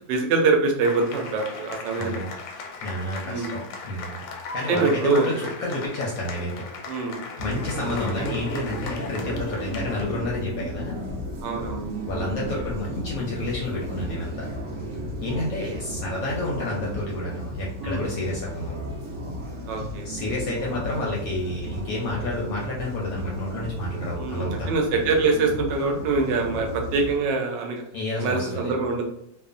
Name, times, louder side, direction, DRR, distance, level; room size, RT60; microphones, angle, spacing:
voice 1, 0.0-2.2 3.2-3.5 4.7-5.3 6.9-7.2 7.8-8.3 11.4-11.8 15.3-15.8 17.8-18.1 19.7-20.1 24.2-27.8 28.2-29.0, right 3 dB, 80° right, 2 dB, 1.2 m, -24 dB
sound 1, 0.8-10.2, left 4 dB, 85° left, 1.3 m, -38 dB
voice 2, 2.0-2.3 2.8-6.7 7.4-11.0 12.1-14.5 15.2-18.8 20.0-24.7 27.9-28.7, left 1 dB, 70° left, -3 dB, 0.8 m, -30 dB
sound 2, 7.4-27.2, equal, 60° right, 0.8 m, -34 dB
3.0 x 2.0 x 2.4 m, 0.75 s
omnidirectional pair, 1.9 m